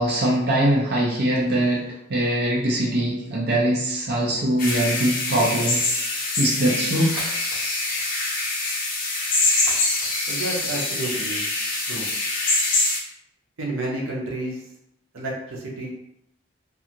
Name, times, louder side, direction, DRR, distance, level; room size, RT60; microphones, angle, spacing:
voice 1, 0.0-7.1, right 1 dB, 55° right, -4 dB, 0.6 m, -22 dB
sound 1, 4.6-13.0, left 2 dB, 45° left, 0.6 m, -24 dB
Shatter, 4.7-5.6 7.2-8.3 9.7-10.7, right 1 dB, 70° right, 1.2 m, -39 dB
voice 2, 10.3-11.4 11.9-12.1 13.6-14.6 15.1-15.9, right 2 dB, 90° right, -2 dB, 0.7 m, -30 dB
2.5 x 2.3 x 2.8 m, 0.79 s
head